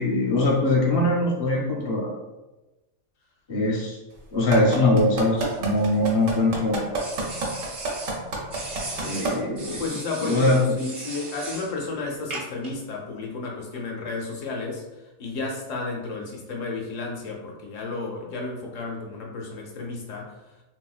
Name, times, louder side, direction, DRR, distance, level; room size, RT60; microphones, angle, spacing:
voice 1, 0.0-2.1 3.5-4.0 4.3-6.8 9.0-9.8 10.2-10.6, left 2 dB, 30° left, -4 dB, 0.5 m, -22 dB
sound 1, 4.5-9.3 9.8-9.9, right 3 dB, 70° right, 1.1 m, -27 dB
sound 2, 5.4-6.4 7.0-8.2 8.5-11.7 12.3-12.7, right 2 dB, 50° right, 0.9 m, -37 dB
voice 2, 9.8-20.4, left 3 dB, 70° left, -1 dB, 0.9 m, -32 dB
3.1 x 2.7 x 2.3 m, 1.0 s
omnidirectional pair, 1.5 m